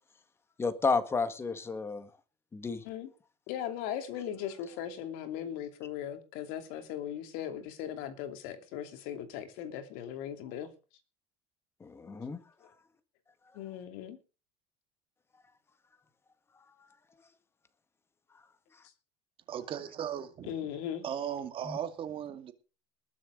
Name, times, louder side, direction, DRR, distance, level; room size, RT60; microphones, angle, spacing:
voice 1, 0.6-2.1 2.5-2.8 11.8-12.4 21.7-21.8, left 4 dB, 15° left, 1.7 m, -31 dB
voice 2, 3.5-10.7 12.6-12.7 13.5-14.2 20.5-21.0, left 10 dB, 70° left, 2.8 m, -38 dB
voice 3, 19.5-20.6 21.0-22.5, right 9 dB, 35° right, 2.3 m, -37 dB
20.5 x 7.5 x 5.1 m
cardioid pair, 145°, 15 cm